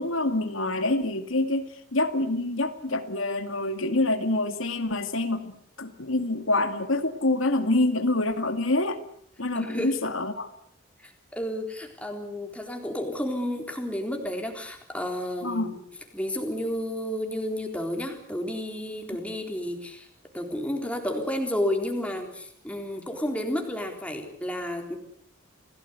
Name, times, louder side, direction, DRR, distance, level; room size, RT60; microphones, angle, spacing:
voice 1, 0.0-9.0 9.4-10.5 15.4-15.7, left 2 dB, 75° left, 8 dB, 2.2 m, -26 dB
voice 2, 9.5-9.9 11.0-15.9 16.1-20.1 20.3-25.0, left 1 dB, 5° left, 3 dB, 3.9 m, -31 dB
28.0 x 17.5 x 8.2 m, 0.66 s
head